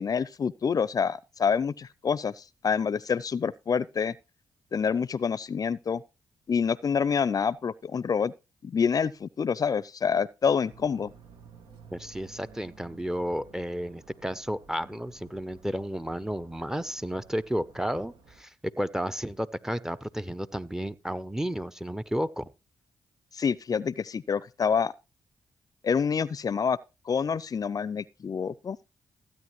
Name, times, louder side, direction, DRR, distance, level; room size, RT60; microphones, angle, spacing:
voice 1, 0.0-4.1 4.7-6.0 6.5-8.3 8.6-11.1 23.3-24.9 25.8-26.8 27.1-28.8, left 6 dB, 50° left, 0.5 m, -27 dB
sound 1, 10.6-18.4, right 4 dB, 85° right, 1.7 m, -54 dB
voice 2, 11.9-22.5, equal, 5° right, 0.7 m, -32 dB
15.5 x 9.1 x 3.1 m
cardioid pair, 55°, 8 cm